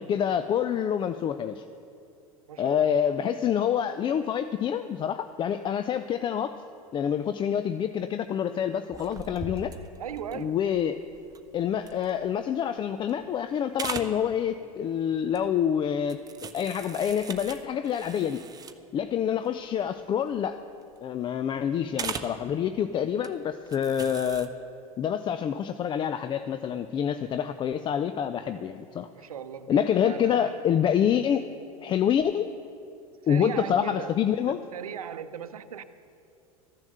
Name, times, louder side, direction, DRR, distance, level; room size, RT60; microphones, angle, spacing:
voice 1, 0.0-1.6 2.6-6.6 6.9-9.7 10.3-11.0 11.5-18.4 18.9-20.6 21.0-24.5 25.0-29.1 29.7-31.4 31.8-32.5 33.3-34.6, left 8 dB, 25° left, 11 dB, 0.4 m, -27 dB
voice 2, 2.5-3.1 10.0-10.6 29.1-30.5 33.3-34.1 34.7-35.8, right 8 dB, 75° right, 12 dB, 0.7 m, -38 dB
sound 1, 8.9-12.6 13.0-13.4 13.7-14.2 15.3-15.6 16.1-19.0 19.4-19.5 19.8-20.0 20.3-21.0 21.9-22.4 23.1-23.3 23.7-24.5, right 5 dB, 20° right, 0.8 m, -39 dB
14.0 x 10.5 x 6.4 m, 2.6 s
figure-of-eight pair, 80°, 19 cm